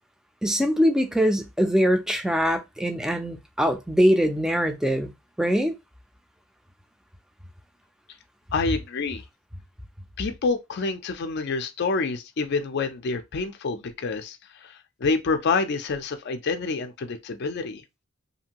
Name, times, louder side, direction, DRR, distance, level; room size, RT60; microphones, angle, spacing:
voice 1, 0.4-5.1 5.4-5.7, equal, 5° right, 0.4 m, -22 dB
voice 2, 8.5-9.2 10.2-17.8, left 4 dB, 55° left, 0.5 m, -27 dB
2.7 x 2.5 x 2.9 m
head